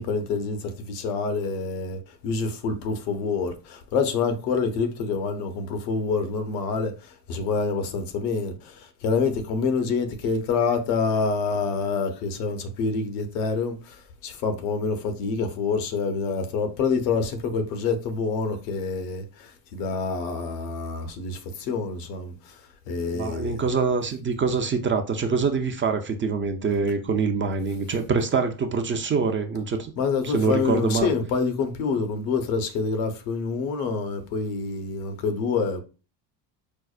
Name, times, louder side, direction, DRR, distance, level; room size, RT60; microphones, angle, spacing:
voice 1, 0.0-6.9 7.3-8.5 9.0-13.8 14.2-19.2 19.7-22.3 22.9-23.6 30.0-35.8, left 4 dB, 80° left, 0.9 m, -26 dB
voice 2, 23.1-29.9 30.2-31.1, right 5 dB, 25° right, 0.5 m, -25 dB
4.6 x 2.0 x 2.4 m
hypercardioid pair, 75°, 49 cm